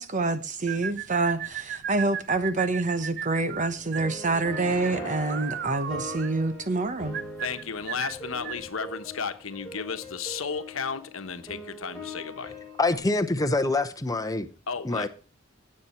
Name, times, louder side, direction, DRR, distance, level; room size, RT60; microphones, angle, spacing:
voice 1, 0.0-7.2, right 3 dB, 40° right, 1.0 m, -27 dB
sound 1, 0.7-8.7, right 9 dB, 55° right, 0.6 m, -36 dB
sound 2, 3.7-13.0, left 1 dB, ahead, 5.1 m, -42 dB
sound 3, 4.2-6.5, left 3 dB, 55° left, 1.3 m, -44 dB
voice 2, 7.4-12.6 14.7-15.1, left 5 dB, 85° left, 1.2 m, -34 dB
voice 3, 12.8-14.5 14.8-15.1, left 2 dB, 20° left, 0.9 m, -25 dB
17.0 x 7.7 x 4.4 m
head